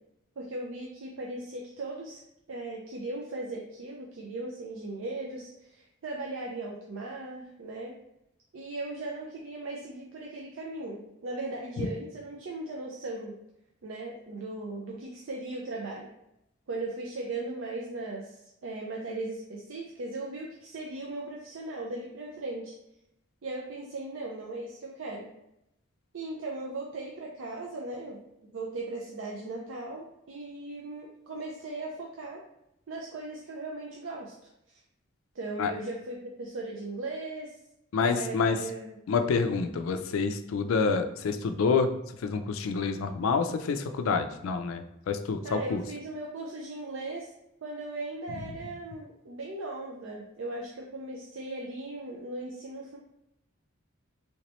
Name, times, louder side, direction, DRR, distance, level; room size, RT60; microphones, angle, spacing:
voice 1, 0.4-2.2 2.5-8.0 8.5-13.3 13.8-16.1 16.7-22.7 23.4-25.3 26.1-32.4 32.9-34.4 34.7-34.8 35.3-37.6 38.0-39.0 45.4-47.3 47.6-53.0, right 2 dB, 75° right, -1 dB, 0.5 m, -38 dB
voice 2, 37.9-38.6 39.1-41.9 42.2-45.8, left 5 dB, 90° left, 8 dB, 0.4 m, -27 dB
3.1 x 2.9 x 3.0 m, 0.83 s
head